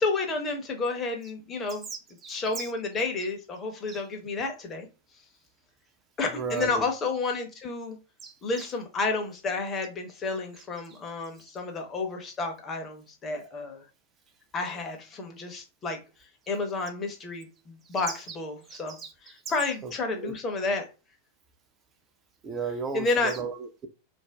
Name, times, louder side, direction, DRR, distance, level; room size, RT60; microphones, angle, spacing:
voice 1, 0.0-1.9 2.3-4.9 6.2-8.0 8.4-13.8 14.5-16.0 16.5-19.0 19.2-20.9 22.9-23.3, left 3 dB, 25° left, 0.9 m, -31 dB
voice 2, 2.2-2.7 3.9-4.0 6.4-6.8 8.2-8.3 8.6-8.7 10.9-11.0 18.1-18.2 18.7-19.1 19.8-20.4 22.4-23.9, right 5 dB, 25° right, 0.6 m, -35 dB
2.5 x 2.1 x 3.4 m
figure-of-eight pair, 90°, 0 cm